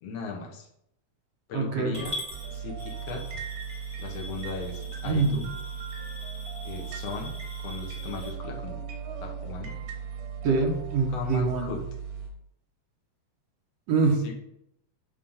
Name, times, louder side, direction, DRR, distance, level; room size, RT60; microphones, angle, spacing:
voice 1, 0.0-0.7 1.5-2.1 2.5-3.4 4.0-5.5 6.6-7.4 7.6-8.8 9.2-9.8 11.1-11.8 14.2-14.3, left 4 dB, 65° left, 0 dB, 2.0 m, -37 dB
voice 2, 1.5-2.0 5.0-5.4 10.4-11.7 13.9-14.2, right 4 dB, 65° right, 1 dB, 2.1 m, -25 dB
Coin (dropping) / Glass, 1.9-8.3, left 1 dB, 25° right, 2.0 m, -43 dB
sound 1, 2.3-12.3, right 7 dB, 85° right, 2.8 m, -37 dB
8.7 x 3.2 x 5.5 m, 0.78 s
omnidirectional pair, 3.5 m